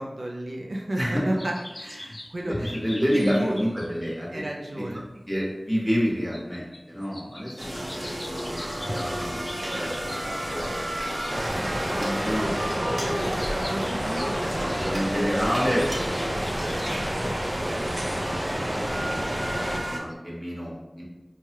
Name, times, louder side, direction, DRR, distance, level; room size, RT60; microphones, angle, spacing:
voice 1, 0.0-2.7 3.1-3.5 4.3-5.0 7.8-7.9 13.7-14.6 18.2-18.4, right 1 dB, 80° right, -1 dB, 0.4 m, -31 dB
sound 1, 1.4-11.5 12.1-17.6 18.2-18.3 18.8-18.9 19.3-19.4 19.8-20.1, left 1 dB, 50° left, 0.4 m, -42 dB
voice 2, 2.4-4.4 4.7-8.6 8.9-9.5 9.8-11.2 12.0-13.3 14.4-16.3 16.6-18.5 18.8-19.3 19.8-21.0, equal, 5° right, -5 dB, 1.2 m, -30 dB
sound 2, 7.6-20.0, equal, 50° right, 0.8 m, -32 dB
sound 3, 11.3-19.8, equal, 30° right, 0.5 m, -30 dB
4.6 x 2.3 x 2.8 m, 1.1 s
wide cardioid pair, 50°, 0 cm